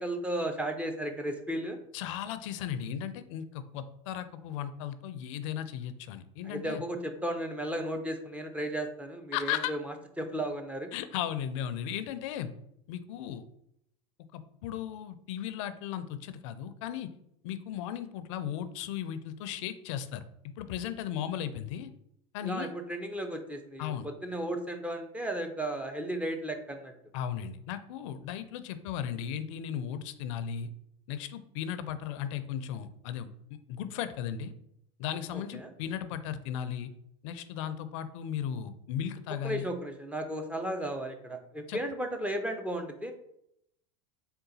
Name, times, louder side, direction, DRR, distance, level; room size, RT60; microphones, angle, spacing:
voice 1, 0.0-1.8 6.4-10.9 22.4-26.9 35.3-35.7 39.4-43.1, right 1 dB, 10° right, 5 dB, 0.4 m, -35 dB
voice 2, 1.9-6.8 9.3-9.7 10.9-12.5 12.9-13.4 14.3-17.1 17.4-20.2 20.6-21.9 22.3-22.7 23.8-24.1 27.1-30.7 31.1-33.3 33.7-34.5 35.0-36.9 37.2-39.7 41.7-41.8, left 9 dB, 70° left, 12 dB, 0.4 m, -36 dB
3.8 x 2.2 x 4.0 m, 0.75 s
supercardioid pair, 115°, 16 cm